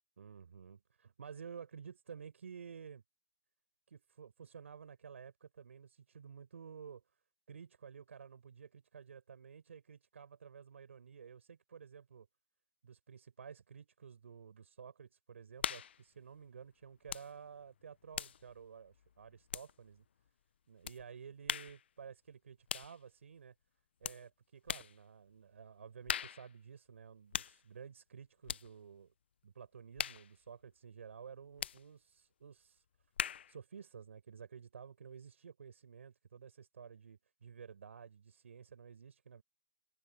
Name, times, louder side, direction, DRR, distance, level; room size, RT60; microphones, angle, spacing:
voice 1, 0.2-3.0 3.9-7.0 7.5-12.3 12.8-20.0 20.7-23.5 24.0-29.1 29.4-32.8 33.5-39.4, right 6 dB, 85° right, 4.8 m, -52 dB
sound 1, 15.6-16.0 17.1-17.3 17.6-20.0 20.8-21.0 21.5-21.8 22.7-23.0 24.0-24.2 24.7-25.0 26.1-26.5 27.3-27.6 28.4-28.7 30.0-30.3 31.6-31.8 33.2-33.5, left 9 dB, 55° left, 0.6 m, -40 dB
open air
hypercardioid pair, 170°, 7 cm